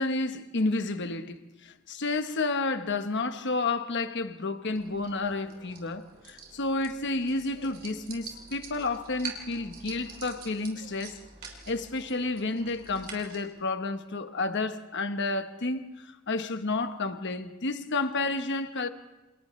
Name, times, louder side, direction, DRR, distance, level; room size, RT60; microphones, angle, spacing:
voice 1, 0.0-11.2 11.7-18.9, left 3 dB, 55° left, 1.1 m, -31 dB
sound 1, 4.7-13.4, right 5 dB, 45° right, 3.2 m, -46 dB
28.5 x 28.5 x 3.2 m
head